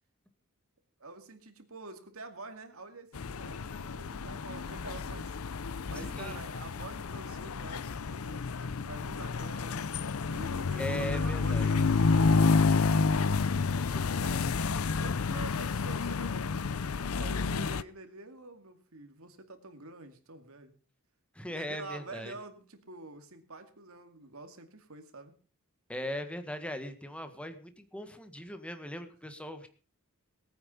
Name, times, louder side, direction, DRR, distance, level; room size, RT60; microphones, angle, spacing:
voice 1, 1.0-5.4 5.9-20.7 21.5-25.3, right 3 dB, 80° right, 7 dB, 2.3 m, -47 dB
sound 1, 3.1-17.8, left 4 dB, 80° left, 0.6 m, -30 dB
voice 2, 5.9-6.4 10.8-11.7 21.3-22.3 25.9-29.7, equal, 5° left, 8 dB, 1.7 m, -39 dB
19.5 x 9.1 x 5.5 m, 0.38 s
head